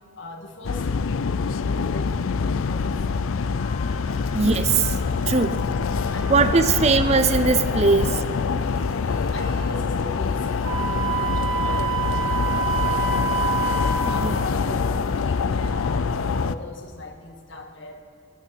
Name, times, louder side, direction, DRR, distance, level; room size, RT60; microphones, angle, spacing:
voice 1, 0.2-3.8 5.9-6.8 7.9-8.2 8.9-18.0, left 2 dB, 65° left, 3 dB, 1.8 m, -39 dB
sound 1, 0.6-16.5, left 5 dB, 80° left, 0.5 m, -25 dB
sound 2, 3.6-15.9, left 3 dB, 40° left, 2.5 m, -42 dB
voice 2, 4.3-5.0 5.3-5.6 6.3-8.1 14.2-14.4, right 4 dB, 30° right, 12 dB, 0.5 m, -20 dB
Wind instrument woodwind instrument, 10.6-14.2, right 7 dB, 75° right, 2.8 m, -26 dB
19.5 x 15.0 x 4.6 m, 2.8 s
head